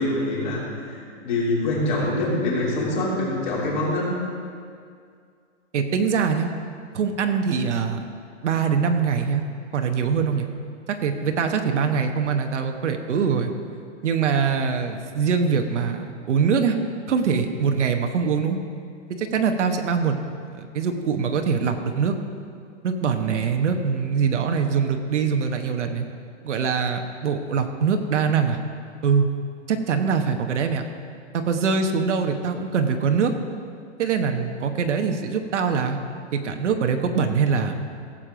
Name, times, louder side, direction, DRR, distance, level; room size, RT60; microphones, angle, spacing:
voice 1, 0.0-4.1, left 2 dB, 40° left, -5 dB, 3.3 m, -25 dB
voice 2, 5.7-6.5 6.9-8.1 8.4-9.4 9.7-10.5 10.9-13.5 14.0-16.8 17.1-18.6 19.2-20.2 20.4-22.2 22.8-26.1 26.4-28.6 29.0-29.3 29.7-30.9 31.3-33.3 34.0-36.0 36.3-37.9, right 6 dB, 75° right, 5 dB, 1.2 m, -23 dB
16.5 x 7.5 x 5.0 m, 2.3 s
hypercardioid pair, 170°, 36 cm